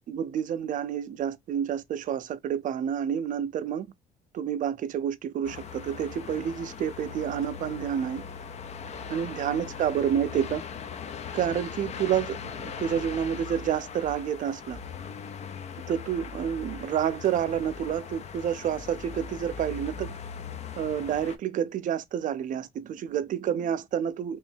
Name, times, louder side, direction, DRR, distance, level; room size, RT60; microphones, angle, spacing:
voice 1, 0.1-3.9 4.3-8.2 9.1-10.6 11.3-14.8 15.9-20.2 20.8-24.4, right 9 dB, 50° right, 0.5 m, -29 dB
sound 1, 5.4-21.4, left 6 dB, 40° left, 0.5 m, -40 dB
2.9 x 2.6 x 3.5 m
cardioid pair, 110°, 17 cm